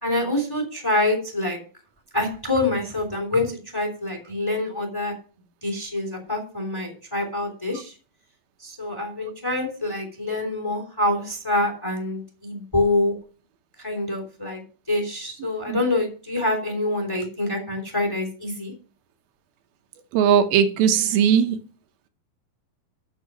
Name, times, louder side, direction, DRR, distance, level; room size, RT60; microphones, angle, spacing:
voice 1, 0.0-1.6 2.1-5.1 5.6-7.9 8.6-13.1 13.8-14.6 14.9-18.7, left 2 dB, 5° left, 3 dB, 2.5 m, -26 dB
voice 2, 20.1-21.6, right 8 dB, 80° right, 7 dB, 2.7 m, -18 dB
8.2 x 7.7 x 6.1 m, 0.37 s
omnidirectional pair, 4.3 m